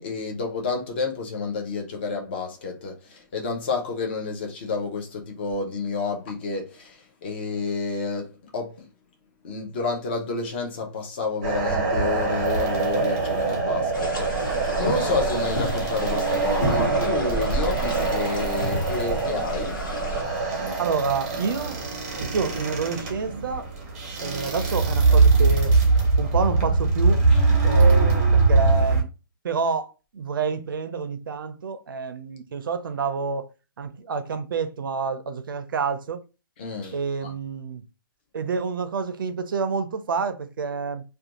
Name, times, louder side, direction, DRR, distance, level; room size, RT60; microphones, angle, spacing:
voice 1, 0.0-8.9 9.4-19.8 27.3-27.4 36.6-37.0 37.2-37.3, left 4 dB, 30° left, 0.5 m, -30 dB
sound 1, 11.4-29.0, right 3 dB, 20° right, 0.5 m, -22 dB
sound 2, 13.9-20.2, equal, 65° left, 1.2 m, -30 dB
voice 2, 20.8-21.8 22.2-23.7 24.2-25.7 26.2-27.2 27.6-29.1 29.4-33.5 33.8-36.2 36.9-37.8 38.3-41.0, right 5 dB, 70° right, 0.4 m, -28 dB
2.5 x 2.2 x 2.8 m
hypercardioid pair, 170°, 12 cm